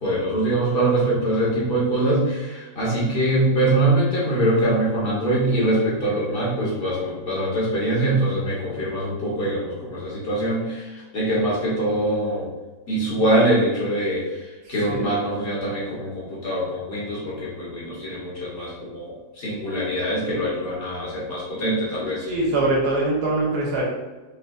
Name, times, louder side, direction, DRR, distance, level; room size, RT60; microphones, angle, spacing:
voice 1, 0.0-12.5 12.9-22.3, right 1 dB, 40° left, -6 dB, 1.2 m, -23 dB
voice 2, 14.6-15.1 22.3-23.8, right 2 dB, 80° right, -4 dB, 1.4 m, -23 dB
4.6 x 2.2 x 2.6 m, 1.2 s
omnidirectional pair, 1.7 m